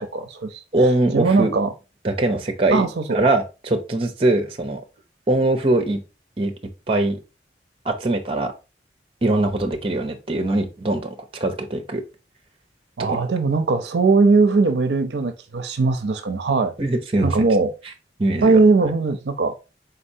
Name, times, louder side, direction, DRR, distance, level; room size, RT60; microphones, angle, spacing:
voice 1, 0.0-0.6 1.1-1.7 2.7-3.3 13.0-16.7 17.2-17.7 18.4-19.5, right 3 dB, 75° right, 0.5 m, -19 dB
voice 2, 0.7-1.5 2.0-2.9 3.1-4.8 5.3-6.0 6.4-6.5 6.9-7.2 7.8-8.5 9.2-12.0 13.1-13.2 16.8-17.5 18.2-18.6, right 2 dB, 30° right, 0.7 m, -21 dB
4.2 x 4.1 x 2.7 m
head